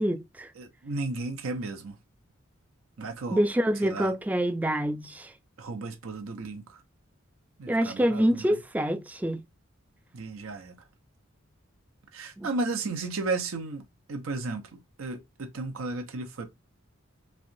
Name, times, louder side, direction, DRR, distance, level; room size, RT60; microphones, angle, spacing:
voice 1, 0.0-0.5 3.3-5.3 7.7-9.4 12.4-12.5, equal, 5° right, 0.3 m, -26 dB
voice 2, 0.6-2.0 3.0-3.4 3.8-4.1 5.6-6.8 7.6-8.6 10.1-10.8 12.1-16.5, right 3 dB, 85° right, 0.7 m, -34 dB
3.1 x 2.8 x 2.5 m
head